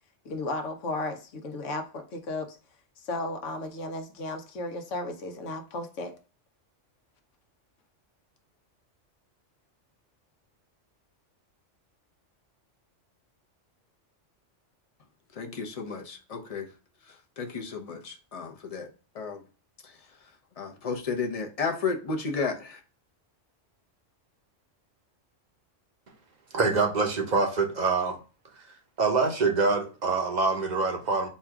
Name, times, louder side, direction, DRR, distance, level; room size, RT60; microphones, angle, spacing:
voice 1, 0.2-2.6 3.0-6.1, left 2 dB, 80° left, 5 dB, 1.1 m, -34 dB
voice 2, 15.3-16.7 17.0-18.9 19.1-19.4 19.8-22.8, left 4 dB, 35° left, 3 dB, 0.7 m, -33 dB
voice 3, 26.5-28.2 28.6-28.7 29.0-31.3, right 4 dB, 45° right, 3 dB, 0.7 m, -25 dB
4.2 x 2.4 x 4.7 m, 0.36 s
omnidirectional pair, 1.3 m